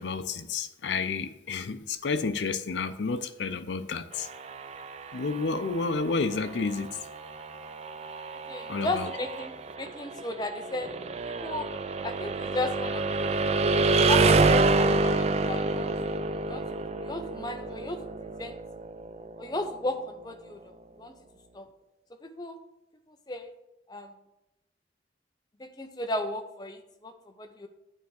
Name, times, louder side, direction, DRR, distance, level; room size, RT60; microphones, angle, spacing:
voice 1, 0.0-4.3 5.1-6.9 8.7-9.1, left 4 dB, 80° left, 10 dB, 0.5 m, -30 dB
sound 1, 4.1-19.9, right 3 dB, 35° right, 0.4 m, -28 dB
voice 2, 8.5-10.9 11.2-11.7 12.0-13.5 13.9-16.6 17.0-18.0 18.4-18.6 19.4-21.1 21.5-21.7 22.2-22.6 23.1-23.5 23.9-24.1 25.6-27.7, left 2 dB, 20° left, 6 dB, 0.6 m, -35 dB
9.0 x 3.5 x 6.4 m, 0.92 s
head